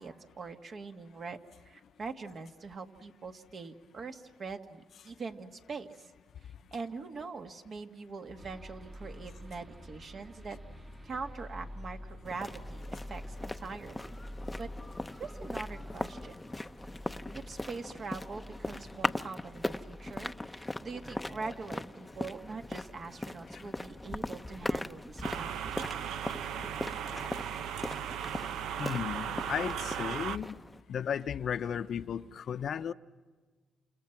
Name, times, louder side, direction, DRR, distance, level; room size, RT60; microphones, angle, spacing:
voice 1, 0.0-6.1 6.7-10.6 11.0-14.1 14.6-14.7 15.2-16.4 17.3-25.9, right 4 dB, 45° right, 2.1 m, -43 dB
sound 1, 8.4-24.5 25.0-25.8, left 1 dB, 25° right, 1.8 m, -49 dB
sound 2, 12.2-30.8, left 1 dB, 10° left, 0.8 m, -40 dB
sound 3, 25.2-30.4, right 9 dB, 80° right, 0.8 m, -37 dB
voice 2, 28.8-30.6 30.9-32.9, left 8 dB, 60° left, 0.8 m, -35 dB
29.5 x 28.0 x 6.0 m
cardioid pair, 90°, 0 cm